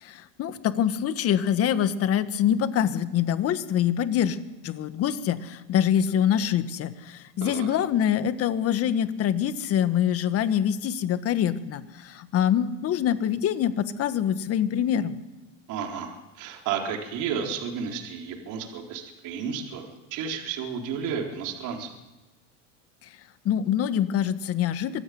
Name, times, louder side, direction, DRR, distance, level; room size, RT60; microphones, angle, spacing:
voice 1, 0.0-4.4 4.6-15.2 23.4-25.0, left 9 dB, 35° left, 11 dB, 1.7 m, -25 dB
voice 2, 15.7-21.9, right 7 dB, 50° right, 1 dB, 4.2 m, -32 dB
24.0 x 16.0 x 9.5 m, 1.1 s
supercardioid pair, 135°, 39 cm